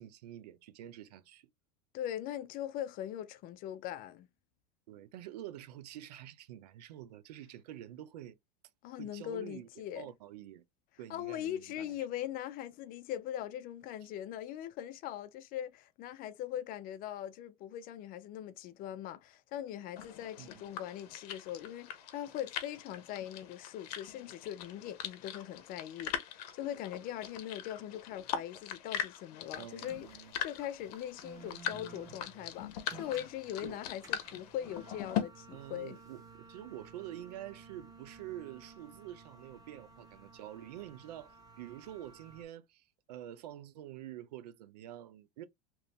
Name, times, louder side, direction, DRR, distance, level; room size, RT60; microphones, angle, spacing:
voice 1, 0.0-1.5 4.9-8.4 9.0-9.7 9.9-10.6 11.0-12.0 20.4-20.6 29.6-30.3 33.0-33.1 33.6-33.8 35.5-45.4, right 12 dB, 85° right, 0.5 m, -47 dB
voice 2, 1.9-4.3 8.8-10.1 11.1-36.0, left 11 dB, 45° left, 0.5 m, -41 dB
sound 1, 20.0-35.2, left 10 dB, 75° left, 0.7 m, -41 dB
sound 2, 29.5-42.4, right 4 dB, 15° right, 1.1 m, -55 dB
2.9 x 2.6 x 3.4 m
supercardioid pair, 110°, 20 cm